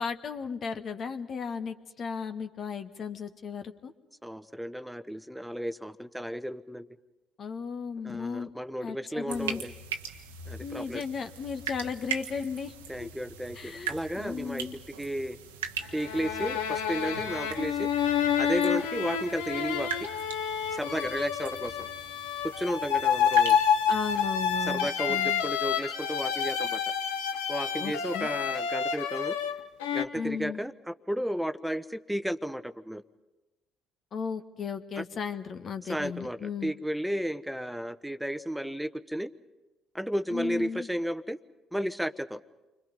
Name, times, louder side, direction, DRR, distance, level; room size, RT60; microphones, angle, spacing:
voice 1, 0.0-3.9 7.4-8.5 8.8-9.6 10.6-12.7 13.0-13.1 13.5-14.8 23.9-25.4 27.8-28.3 30.1-30.6 34.1-36.7 40.3-40.9, left 6 dB, 45° left, 8 dB, 1.5 m, -35 dB
voice 2, 4.2-6.9 8.0-9.7 10.5-11.0 12.9-14.7 15.0-15.4 15.9-17.9 18.4-20.1 20.7-21.9 22.4-23.6 24.7-26.8 27.5-29.4 29.9-33.0 35.0-35.1 35.9-39.3 39.9-41.4 41.7-42.4, equal, 5° right, 12 dB, 1.1 m, -33 dB
sound 1, 9.3-24.7, right 7 dB, 80° right, 1.3 m, -41 dB
sound 2, 15.8-30.0, left 8 dB, 75° left, 1.2 m, -29 dB
29.5 x 25.0 x 5.4 m, 1.1 s
figure-of-eight pair, 50°, 0 cm